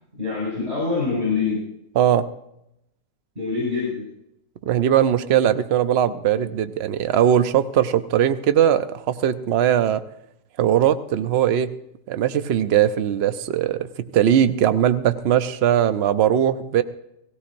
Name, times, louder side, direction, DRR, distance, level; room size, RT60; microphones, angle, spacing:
voice 1, 0.1-1.6 3.3-4.1, left 4 dB, 35° right, -5 dB, 6.2 m, -25 dB
voice 2, 2.0-2.3 4.7-10.0 10.6-11.7 12.1-16.8, right 10 dB, 70° right, 11 dB, 0.6 m, -20 dB
18.5 x 16.5 x 2.6 m, 0.81 s
omnidirectional pair, 1.9 m